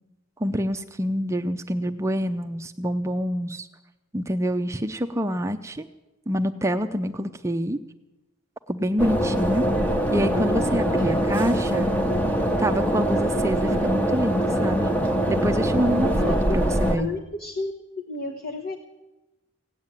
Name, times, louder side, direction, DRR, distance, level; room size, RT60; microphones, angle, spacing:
voice 1, 0.4-3.7 4.1-5.9 6.3-7.8 8.7-9.7 10.1-11.9 12.6-14.9 15.3-17.1, equal, 15° right, 7 dB, 0.5 m, -26 dB
sound 1, 9.0-17.0, equal, 5° left, 0.9 m, -23 dB
voice 2, 11.0-11.5 16.2-16.6 17.0-17.7 18.0-18.8, left 3 dB, 50° left, 3 dB, 1.2 m, -32 dB
17.0 x 9.0 x 8.9 m, 1.0 s
head